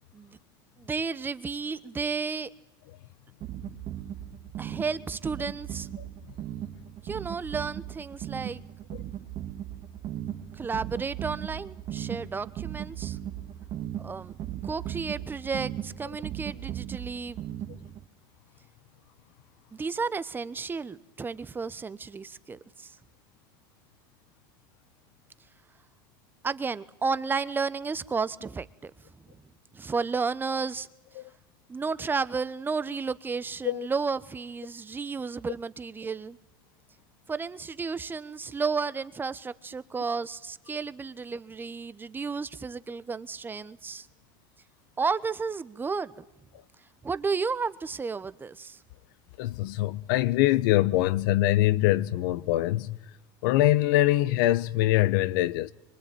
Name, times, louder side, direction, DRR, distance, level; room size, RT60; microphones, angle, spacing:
voice 1, 0.8-2.5 4.6-5.9 7.0-8.6 10.5-13.2 14.0-14.4 14.6-17.4 17.7-17.9 19.7-23.0 26.4-28.9 29.7-30.9 31.7-36.4 37.3-44.1 45.0-46.2 47.0-48.8, right 4 dB, 20° right, 1.0 m, -32 dB
sound 1, 3.4-18.1, right 11 dB, 45° right, 1.8 m, -37 dB
voice 2, 49.4-53.1 53.4-55.7, left 15 dB, 70° left, 1.0 m, -24 dB
24.5 x 24.0 x 9.1 m
supercardioid pair, 110°, 11 cm